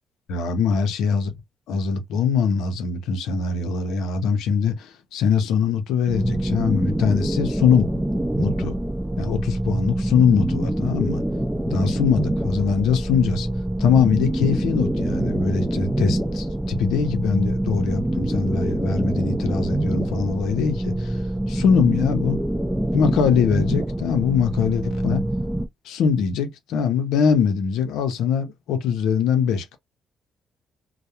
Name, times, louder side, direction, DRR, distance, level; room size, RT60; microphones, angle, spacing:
voice 1, 0.3-1.3 1.7-7.9 8.4-8.8 9.2-11.2 11.7-13.5 13.8-21.2 21.5-22.4 22.9-25.2 25.8-29.8, left 6 dB, 85° left, 0.5 m, -22 dB
sound 1, 6.1-25.7, right 1 dB, 10° right, 0.4 m, -25 dB
2.2 x 2.0 x 2.8 m
cardioid pair, 90°, 0 cm